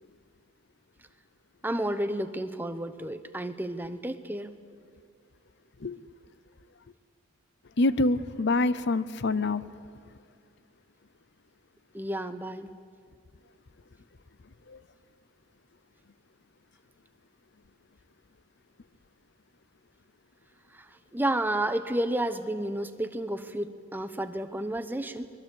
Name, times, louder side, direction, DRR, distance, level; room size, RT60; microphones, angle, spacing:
voice 1, 1.6-4.6 11.9-12.7 20.7-25.3, right 1 dB, 10° right, 10 dB, 0.9 m, -31 dB
voice 2, 7.8-9.7 14.7-14.8, left 2 dB, 55° left, 15 dB, 0.7 m, -26 dB
24.5 x 21.5 x 8.5 m, 2.3 s
head